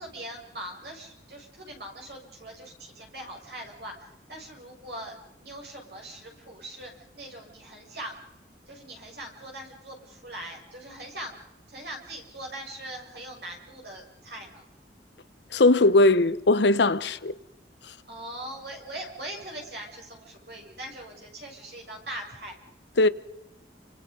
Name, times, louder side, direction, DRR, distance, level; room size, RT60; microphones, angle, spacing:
voice 1, 0.0-8.1 8.7-11.4 11.7-14.6 17.0-17.2 18.1-22.5, right 1 dB, 65° right, 6.8 m, -41 dB
voice 2, 15.5-17.3 23.0-23.1, left 2 dB, 75° left, 0.9 m, -19 dB
29.5 x 25.5 x 5.3 m
head